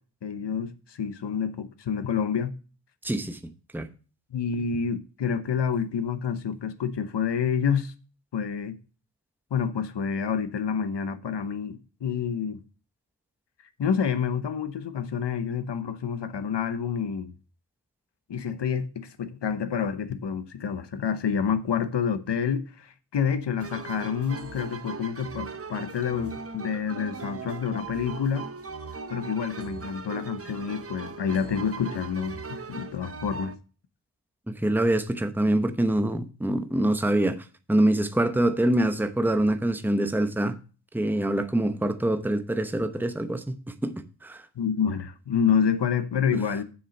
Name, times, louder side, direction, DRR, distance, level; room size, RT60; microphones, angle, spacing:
voice 1, 0.2-2.5 4.3-7.9 8.3-8.8 9.5-12.6 13.8-17.3 18.3-28.5 29.1-33.5 44.6-46.6, left 7 dB, 80° left, 1.0 m, -28 dB
voice 2, 3.0-3.4 3.7-3.9 34.5-37.4 37.7-40.5 40.9-43.4 43.8-43.9 44.2-44.5, right 1 dB, 5° right, 0.8 m, -24 dB
sound 1, 23.6-33.6, right 4 dB, 35° right, 0.8 m, -39 dB
7.2 x 6.7 x 5.2 m
wide cardioid pair, 90°, 41 cm